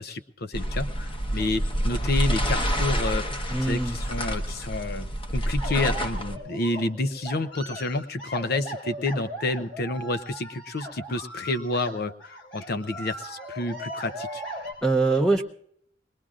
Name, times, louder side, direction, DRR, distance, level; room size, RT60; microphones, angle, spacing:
voice 1, 0.0-5.1 5.3-14.4, left 2 dB, 60° left, 12 dB, 0.7 m, -29 dB
sound 1, 0.5-6.4, equal, 30° left, 1.0 m, -28 dB
voice 2, 3.5-4.0 14.8-15.4, right 3 dB, 5° left, 3 dB, 0.7 m, -22 dB
sound 2, 5.6-14.7, right 1 dB, 75° left, 4.9 m, -38 dB
21.0 x 20.0 x 2.5 m, 0.67 s
head